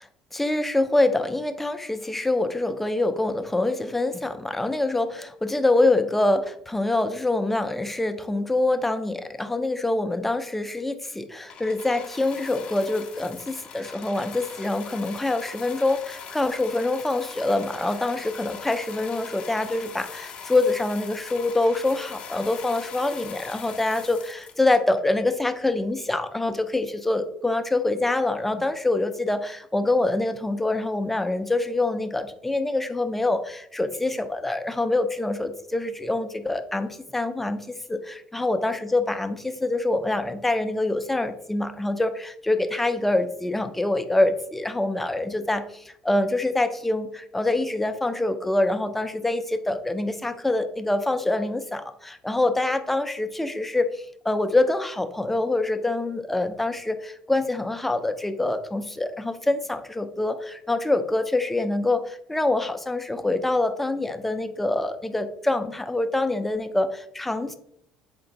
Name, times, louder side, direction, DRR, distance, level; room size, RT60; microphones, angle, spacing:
voice 1, 0.3-67.6, left 2 dB, 10° left, 9 dB, 0.4 m, -25 dB
sound 1, 11.5-25.2 25.9-26.0, left 6 dB, 55° left, 0.6 m, -41 dB
3.8 x 2.5 x 3.9 m, 0.71 s
cardioid pair, 110°, 2 cm